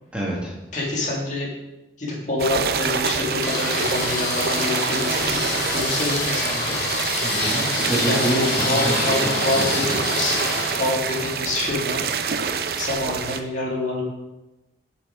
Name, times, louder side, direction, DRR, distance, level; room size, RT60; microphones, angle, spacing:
voice 1, 0.1-0.5 7.2-9.3 9.5-10.1, right 1 dB, 5° right, -5 dB, 1.5 m, -27 dB
voice 2, 0.7-1.5 2.0-6.8 8.0-10.4 10.8-12.0 12.8-14.0, left 2 dB, 45° left, -3 dB, 2.0 m, -26 dB
sound 1, 2.4-13.4, right 6 dB, 55° right, 0.5 m, -26 dB
sound 2, 3.4-11.3, left 2 dB, 70° left, 2.6 m, -27 dB
8.4 x 5.4 x 4.9 m, 1.0 s
head